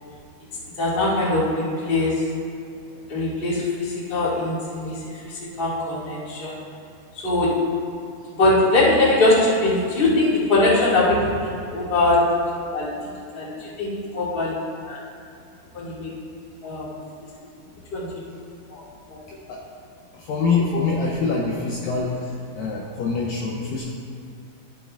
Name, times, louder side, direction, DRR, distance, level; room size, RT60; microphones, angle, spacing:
voice 1, 0.8-2.1 3.1-4.9 5.2-6.5 7.2-7.5 8.3-12.2 12.7-12.9 13.3-14.5 14.9-15.0 15.7-16.1 16.6-16.9 17.9-18.1 18.7-18.8 19.1-19.2, left 2 dB, 25° left, -9 dB, 1.2 m, -21 dB
voice 2, 20.3-22.1 22.6-23.9, left 4 dB, 80° left, -3 dB, 2.0 m, -24 dB
13.0 x 7.4 x 2.5 m, 2.4 s
omnidirectional pair, 4.6 m